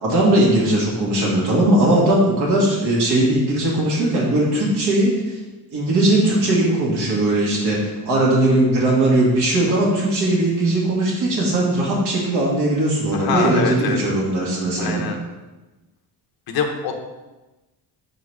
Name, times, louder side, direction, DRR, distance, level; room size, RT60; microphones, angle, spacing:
voice 1, 0.0-5.4 5.7-7.8 8.1-15.0, right 1 dB, 75° right, -5 dB, 1.9 m, -19 dB
voice 2, 13.1-14.0 14.8-15.2 16.5-16.9, left 6 dB, 65° left, 3 dB, 0.9 m, -24 dB
5.1 x 3.8 x 4.8 m, 1.1 s
cardioid pair, 175°, 40 cm